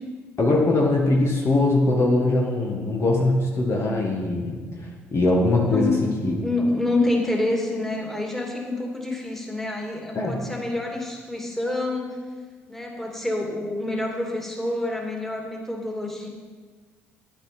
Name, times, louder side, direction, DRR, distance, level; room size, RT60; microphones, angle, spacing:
voice 1, 0.4-5.9 6.2-6.4 10.1-10.4, left 2 dB, 40° left, -1 dB, 1.6 m, -21 dB
voice 2, 5.4-12.2 12.7-16.3, left 2 dB, 5° left, 0 dB, 2.4 m, -27 dB
10.0 x 8.9 x 4.5 m, 1.5 s
hypercardioid pair, 50°, 7 cm